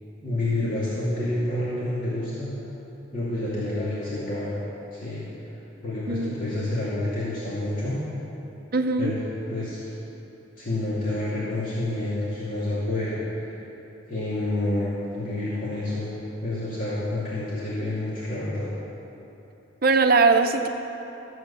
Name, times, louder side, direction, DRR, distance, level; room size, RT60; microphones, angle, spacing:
voice 1, 0.2-2.5 3.1-4.5 4.9-5.2 5.8-8.0 9.0-9.2 9.5-9.9 10.6-13.2 14.1-16.1 16.4-18.7, left 1 dB, 45° left, -10 dB, 2.4 m, -28 dB
voice 2, 8.7-9.1 19.8-20.7, right 4 dB, 50° right, 6 dB, 0.7 m, -20 dB
14.0 x 7.7 x 6.9 m, 3.0 s
head